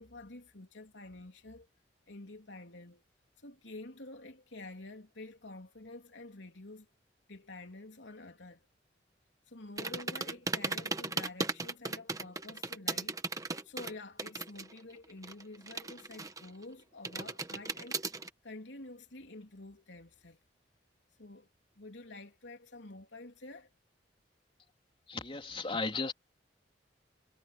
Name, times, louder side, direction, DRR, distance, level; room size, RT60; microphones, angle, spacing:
voice 1, 0.0-1.7 2.1-3.0 3.4-6.9 7.3-8.6 9.5-20.4 21.2-21.5 21.8-23.7, left 2 dB, 85° left, 3.4 m, -49 dB
sound 1, 9.8-14.8 15.0-16.6 17.0-18.3, right 3 dB, 20° right, 1.3 m, -36 dB
voice 2, 25.1-26.1, left 3 dB, 30° left, 3.2 m, -35 dB
head